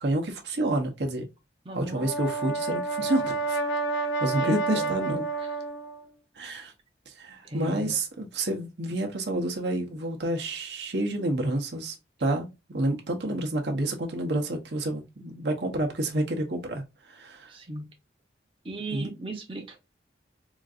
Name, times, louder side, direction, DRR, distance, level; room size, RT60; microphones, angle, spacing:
voice 1, 0.0-1.3 1.7-3.6 3.9-5.3 6.4-6.7 7.1-17.5 18.9-19.1, right 1 dB, 70° right, 0.8 m, -29 dB
voice 2, 1.6-2.1 4.4-4.9 5.4-5.5 7.4-7.9 17.5-17.9 18.6-19.8, right 2 dB, 30° right, 0.8 m, -37 dB
Brass instrument, 1.8-6.0, right 3 dB, 90° left, 0.8 m, -29 dB
3.8 x 2.5 x 2.4 m
head